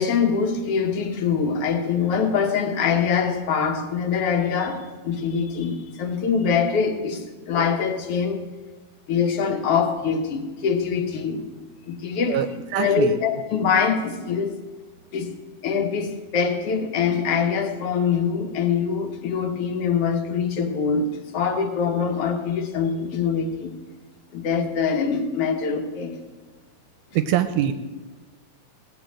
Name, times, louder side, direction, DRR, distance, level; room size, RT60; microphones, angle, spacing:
voice 1, 0.0-8.4 9.1-11.5 11.9-12.4 12.8-14.5 15.1-15.3 15.6-23.8 24.3-26.2, left 6 dB, 55° left, 6 dB, 1.8 m, -24 dB
voice 2, 12.7-13.2 27.1-27.7, right 11 dB, 80° right, 10 dB, 1.9 m, -23 dB
17.5 x 6.9 x 7.6 m, 1.3 s
omnidirectional pair, 3.8 m